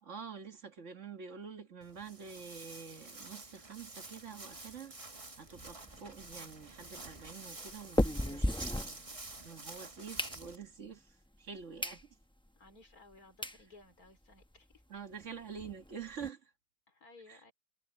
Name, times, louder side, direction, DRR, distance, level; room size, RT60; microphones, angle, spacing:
voice 1, 0.0-5.1 5.4-9.0 9.4-12.0 14.9-16.5 17.3-17.4, right 6 dB, 45° right, 1.7 m, -47 dB
Walk footsteps, 1.8-10.6, right 2 dB, 20° right, 1.5 m, -49 dB
sound 1, 5.6-9.5 9.9-10.9 11.4-11.5 11.8-12.0 12.5-12.6 13.1-13.2 13.4-13.6 14.0-14.1 14.3-14.4 14.7-14.8 15.1-16.3, left 1 dB, 5° left, 0.5 m, -37 dB
voice 2, 8.2-8.9 12.6-14.8 16.9-17.5, left 3 dB, 55° left, 4.4 m, -59 dB
omnidirectional pair, 1.9 m